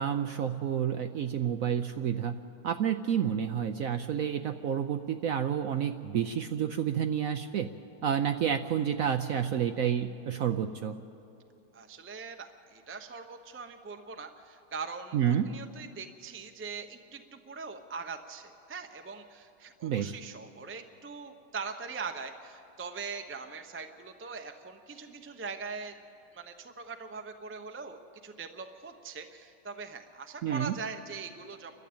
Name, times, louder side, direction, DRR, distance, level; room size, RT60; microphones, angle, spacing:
voice 1, 0.0-2.4 2.6-7.7 8.0-11.0 15.1-15.5 19.8-20.1 30.4-30.8, right 8 dB, 70° right, 8 dB, 0.8 m, -29 dB
voice 2, 11.7-15.2 15.5-25.9 26.3-31.8, right 5 dB, 20° right, 6 dB, 0.3 m, -42 dB
29.5 x 12.0 x 8.7 m, 2.8 s
omnidirectional pair, 2.0 m